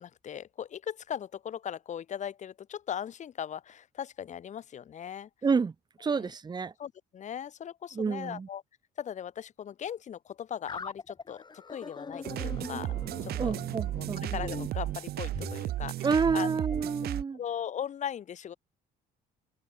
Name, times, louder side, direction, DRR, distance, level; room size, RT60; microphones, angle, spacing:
voice 1, 0.0-5.3 6.1-6.3 6.8-8.6 9.0-12.9 13.2-13.6 14.0-16.5 17.3-18.6, left 9 dB, 45° left, 1.3 m, -39 dB
voice 2, 5.4-5.7 6.0-6.7 7.9-8.5 13.4-14.2 16.0-17.4, right 5 dB, 25° right, 1.2 m, -29 dB
sound 1, 10.7-15.6, left 4 dB, 25° left, 6.0 m, -42 dB
sound 2, 12.2-17.2, right 14 dB, 70° right, 1.3 m, -34 dB
cardioid pair, 110°, 17 cm